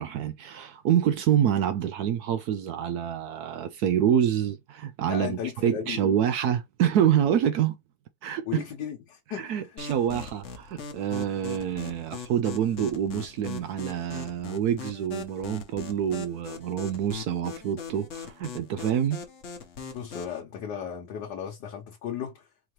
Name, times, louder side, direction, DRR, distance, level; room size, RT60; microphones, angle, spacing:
voice 1, 0.0-7.8 8.2-8.6 9.3-19.2, right 9 dB, 70° right, 1.0 m, -27 dB
voice 2, 5.1-6.0 8.5-9.8 19.9-22.5, left 8 dB, 70° left, 1.5 m, -35 dB
sound 1, 9.8-20.4, left 6 dB, 50° left, 1.0 m, -40 dB
4.7 x 2.8 x 3.0 m
omnidirectional pair, 2.0 m